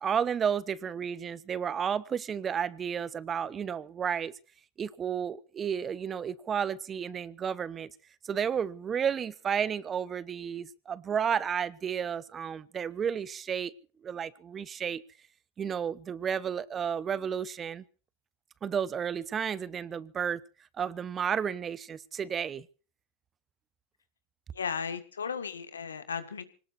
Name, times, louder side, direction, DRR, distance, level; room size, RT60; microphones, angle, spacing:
voice 1, 0.0-4.3 4.8-7.9 8.2-13.7 14.0-15.0 15.6-17.8 18.6-20.4 20.8-22.6, right 7 dB, 25° right, 1.0 m, -32 dB
voice 2, 24.5-26.4, left 6 dB, 90° left, 1.9 m, -35 dB
25.5 x 18.5 x 2.7 m
hypercardioid pair, 95°, 0 cm